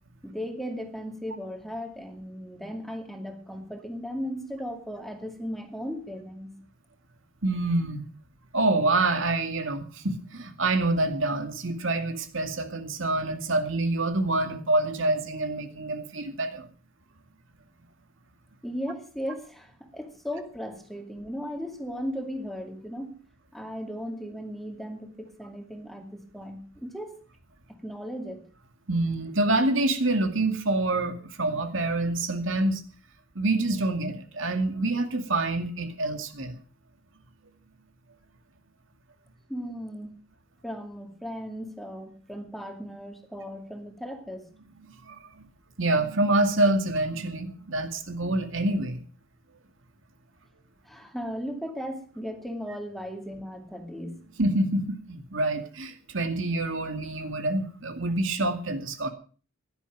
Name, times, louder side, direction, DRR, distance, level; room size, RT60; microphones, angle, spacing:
voice 1, 0.2-6.5 18.6-23.2 23.5-27.2 27.7-28.5 39.5-40.1 40.6-44.5 50.8-54.3, equal, ahead, 4 dB, 2.4 m, -36 dB
voice 2, 7.4-8.0 8.5-16.7 28.9-32.8 33.4-36.5 45.0-45.5 45.8-49.0 54.4-59.1, right 2 dB, 70° right, 7 dB, 2.3 m, -26 dB
16.0 x 11.5 x 6.1 m, 0.40 s
head